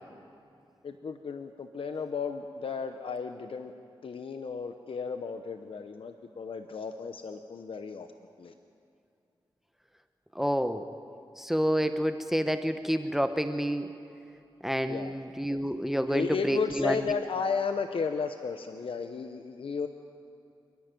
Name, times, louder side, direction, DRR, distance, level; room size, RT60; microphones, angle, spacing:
voice 1, 0.8-3.7 4.0-8.1 8.4-8.5 14.9-15.1 16.1-19.9, left 5 dB, 70° left, 7 dB, 0.9 m, -34 dB
voice 2, 10.4-10.8 11.4-13.8 14.6-17.1, equal, 5° right, 8 dB, 0.9 m, -28 dB
28.0 x 10.5 x 9.2 m, 2.6 s
cardioid pair, 65°, 10 cm